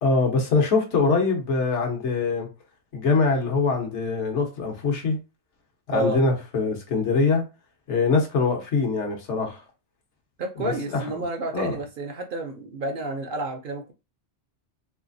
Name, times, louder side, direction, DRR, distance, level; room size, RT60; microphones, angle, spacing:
voice 1, 0.0-2.5 2.9-5.2 5.9-7.4 7.9-9.6 10.6-11.2 11.5-11.7, left 4 dB, 75° left, 1.3 m, -23 dB
voice 2, 10.4-13.9, right 2 dB, 60° right, 0.6 m, -30 dB
3.2 x 3.2 x 2.5 m
omnidirectional pair, 1.2 m